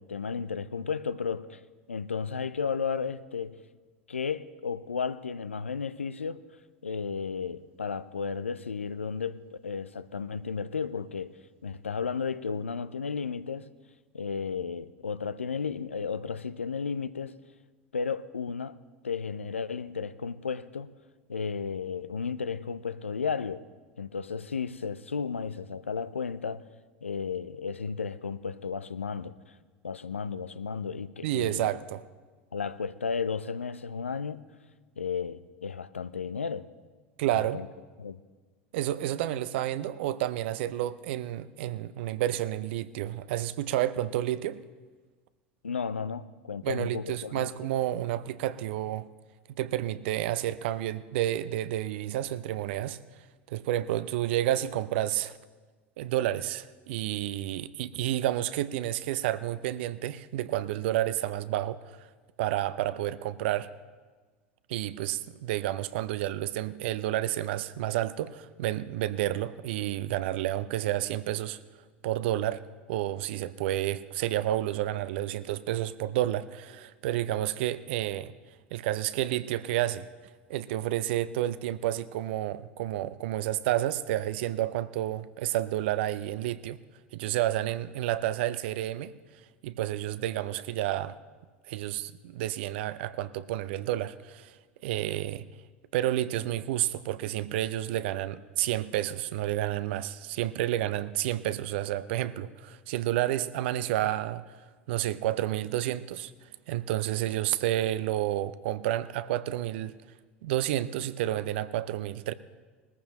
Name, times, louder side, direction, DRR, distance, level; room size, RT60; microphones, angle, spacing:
voice 1, 0.0-1.6 1.9-3.6 4.1-6.4 6.8-13.7 14.1-17.4 17.9-18.8 19.0-20.9 21.3-23.6 24.0-26.7 27.0-29.3 29.8-31.7 32.5-34.4 35.0-36.7 37.3-37.7 38.0-38.2 45.6-47.5, left 5 dB, 85° left, 0.4 m, -33 dB
voice 2, 31.2-32.0 37.2-37.6 38.7-44.6 46.6-49.1 49.6-53.0 53.5-55.3 56.0-62.1 62.4-63.7 64.7-71.6 72.0-72.6 72.9-78.3 78.7-80.1 80.5-86.8 87.1-89.1 89.6-91.2 91.7-94.5 94.8-95.5 95.9-104.4 104.9-106.3 106.7-109.9 110.4-112.3, right 13 dB, 65° right, 0.5 m, -30 dB
20.0 x 14.5 x 3.0 m
figure-of-eight pair, 80°, 7 cm